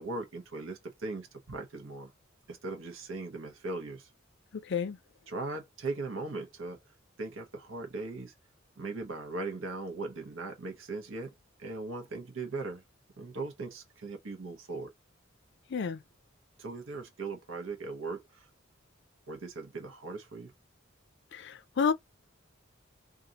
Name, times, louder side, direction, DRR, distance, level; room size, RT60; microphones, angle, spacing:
voice 1, 0.0-2.1 2.5-4.1 5.3-6.8 7.2-8.3 8.8-11.3 11.6-12.8 13.2-14.9 16.6-18.5 19.3-20.5, right 3 dB, 75° right, 0.8 m, -39 dB
voice 2, 21.3-21.9, left 6 dB, 65° left, 0.5 m, -30 dB
2.8 x 2.4 x 3.6 m
head